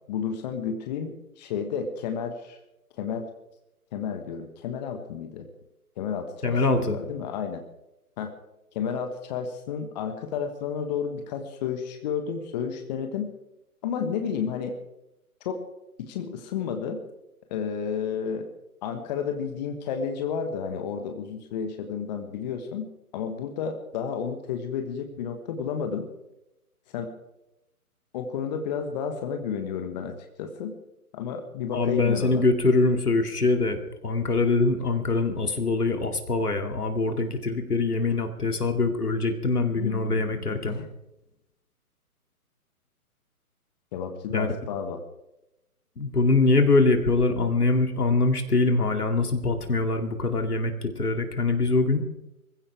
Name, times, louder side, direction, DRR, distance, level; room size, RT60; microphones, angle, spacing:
voice 1, 0.1-2.6 3.0-3.3 3.9-5.5 6.0-7.6 8.2-8.3 8.7-13.3 13.8-14.7 15.4-15.6 16.1-17.0 17.5-18.5 18.8-26.1 26.9-27.1 28.1-30.7 31.1-32.4 39.7-40.9 43.9-45.0, left 7 dB, 30° left, 6 dB, 1.5 m, -31 dB
voice 2, 6.4-7.0 31.7-33.8 34.0-40.8 44.3-44.5 46.0-52.0, left 3 dB, 80° left, 5 dB, 2.6 m, -23 dB
24.0 x 15.5 x 3.5 m, 0.89 s
figure-of-eight pair, 135°, 45 cm